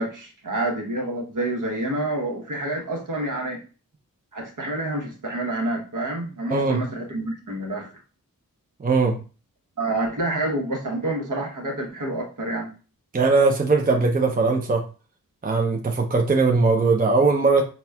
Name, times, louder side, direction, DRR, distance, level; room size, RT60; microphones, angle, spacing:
voice 1, 0.0-3.6 4.3-8.0 9.8-12.7, right 2 dB, 60° right, 1.0 m, -28 dB
voice 2, 8.8-9.2 13.1-14.8 15.4-17.6, right 3 dB, 25° right, 0.5 m, -20 dB
4.0 x 2.2 x 2.3 m
cardioid pair, 45°, 36 cm